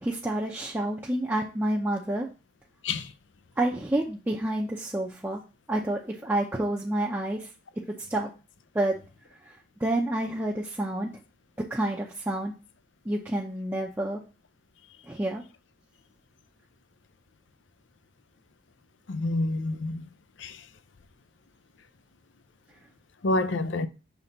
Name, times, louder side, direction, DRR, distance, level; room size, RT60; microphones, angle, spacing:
voice 1, 0.0-2.3 3.6-5.4 5.7-7.5 8.1-8.3 8.7-8.9 9.5-11.1 11.6-12.5 13.1-14.2 15.0-15.4, right 1 dB, 10° right, 0.6 m, -29 dB
voice 2, 19.1-20.1 20.4-20.6 23.2-23.9, left 2 dB, 75° left, 0.6 m, -28 dB
5.9 x 3.4 x 5.2 m
head